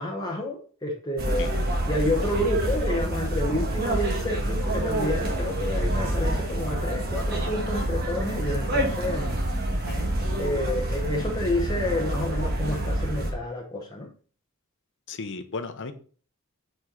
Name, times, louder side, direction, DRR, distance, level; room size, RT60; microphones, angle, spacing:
voice 1, 0.0-1.5 1.9-9.4 10.4-14.1, left 1 dB, 20° left, -2 dB, 0.8 m, -29 dB
sound 1, 1.2-13.3, right 1 dB, 45° right, 1.5 m, -27 dB
voice 2, 15.1-15.9, left 4 dB, 60° left, 9 dB, 0.7 m, -35 dB
6.2 x 4.5 x 3.7 m, 0.42 s
head